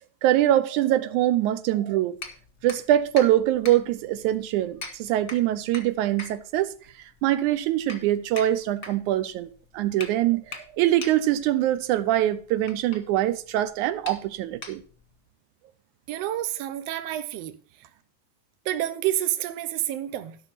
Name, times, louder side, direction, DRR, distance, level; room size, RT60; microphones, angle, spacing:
voice 1, 0.2-2.2 2.6-6.7 7.2-9.5 9.7-14.8, right 13 dB, 85° right, 2.1 m, -23 dB
sound 1, 2.2-15.2, left 3 dB, 40° left, 1.2 m, -43 dB
voice 2, 16.1-17.6 18.7-20.4, right 13 dB, 70° right, 1.7 m, -29 dB
12.5 x 5.8 x 5.8 m
omnidirectional pair, 3.4 m